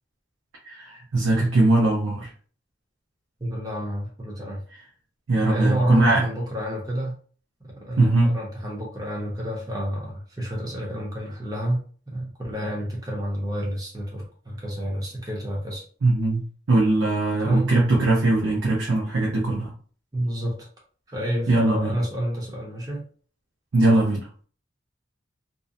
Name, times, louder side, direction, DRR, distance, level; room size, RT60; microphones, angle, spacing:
voice 1, 0.6-2.3 5.3-6.2 8.0-8.3 16.0-16.4 16.7-19.7 21.5-22.0 23.7-24.3, right 2 dB, 85° right, -3 dB, 0.6 m, -21 dB
voice 2, 3.4-4.6 5.4-7.1 7.8-11.8 12.1-15.8 17.4-17.7 20.1-20.5 21.1-23.0, right 1 dB, 20° right, -3 dB, 0.7 m, -28 dB
2.6 x 2.0 x 2.5 m, 0.43 s
head